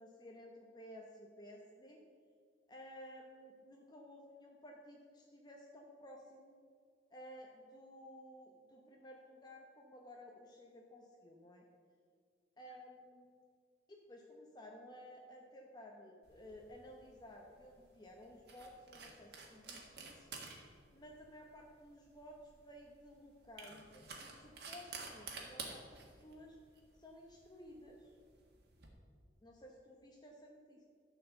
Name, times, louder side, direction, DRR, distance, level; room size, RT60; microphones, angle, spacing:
voice 1, 0.0-2.0 2.7-6.6 7.1-11.7 12.6-13.3 13.9-20.4 20.9-26.6 27.0-28.1 29.4-30.8, equal, 25° left, 0 dB, 0.8 m, -55 dB
sound 1, 16.3-28.9, right 4 dB, 60° right, 1.8 m, -52 dB
13.0 x 4.6 x 7.7 m, 2.1 s
head